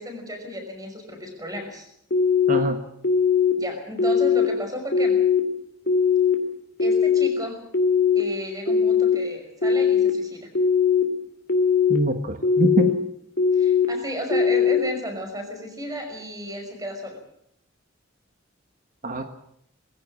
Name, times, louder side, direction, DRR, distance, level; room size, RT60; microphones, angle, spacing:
voice 1, 0.0-1.9 3.6-5.2 6.8-7.6 8.2-10.5 13.5-17.2, equal, 20° right, 5 dB, 5.7 m, -33 dB
sound 1, 2.1-2.6 3.0-3.5 4.0-4.5 4.9-5.4 5.9-6.4 6.8-7.3 7.7-8.2 8.7-9.2 9.6-10.1 10.5-11.0 11.5-12.0 12.4-12.9 13.4-13.9 14.3-14.8, left 6 dB, 55° left, 2.9 m, -19 dB
voice 2, 2.5-2.8 11.9-13.0 19.0-19.3, right 1 dB, 45° right, 7 dB, 1.5 m, -23 dB
21.0 x 16.0 x 8.5 m, 0.73 s
head